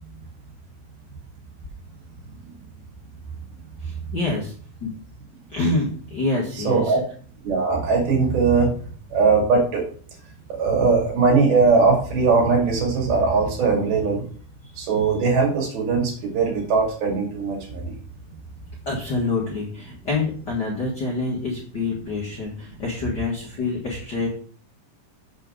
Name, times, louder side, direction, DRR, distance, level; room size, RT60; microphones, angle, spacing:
voice 1, 3.8-4.5 4.8-4.9 5.5-7.0 14.6-14.8 18.8-24.3, left 3 dB, 50° left, -4 dB, 1.4 m, -27 dB
voice 2, 6.7-7.0 7.4-8.8 9.1-9.9 10.5-14.2 14.8-17.9, right 4 dB, 85° right, -1 dB, 4.4 m, -20 dB
7.7 x 6.9 x 3.7 m, 0.43 s
omnidirectional pair, 4.2 m